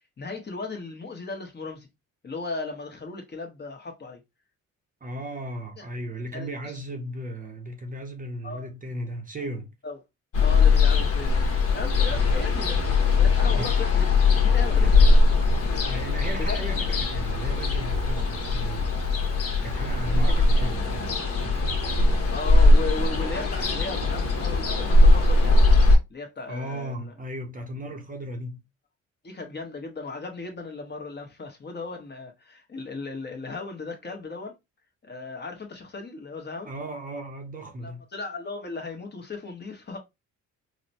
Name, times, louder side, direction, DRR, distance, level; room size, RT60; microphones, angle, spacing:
voice 1, 0.2-1.9 2.2-4.2 5.8-5.9 6.3-6.8 8.4-8.7 9.8-10.0 10.4-12.8 13.2-15.1 16.4-16.6 20.1-20.3 22.3-25.6 26.1-27.1 29.2-34.5 35.0-36.7 37.8-40.0, left 3 dB, 35° left, 1.1 m, -36 dB
voice 2, 5.0-9.7 12.1-12.4 13.5-13.8 14.8-14.9 15.9-19.0 19.6-21.0 26.5-28.6 36.7-38.0, right 1 dB, 25° right, 0.7 m, -36 dB
Ocean, 10.3-26.0, left 3 dB, 55° left, 1.2 m, -20 dB
4.0 x 2.1 x 2.6 m
cardioid pair, 90°, 30 cm